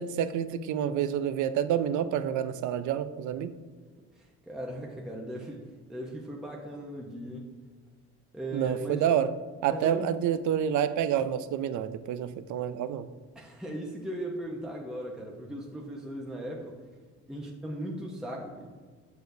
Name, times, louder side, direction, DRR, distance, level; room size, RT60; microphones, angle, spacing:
voice 1, 0.0-3.5 8.5-9.3 9.6-13.1, right 9 dB, 75° right, 13 dB, 0.5 m, -28 dB
voice 2, 4.2-5.6 5.9-7.5 8.3-9.1 9.7-10.2 13.3-16.8 17.3-18.7, right 1 dB, ahead, -2 dB, 0.8 m, -38 dB
6.7 x 6.4 x 2.7 m, 1.5 s
cardioid pair, 90°, 30 cm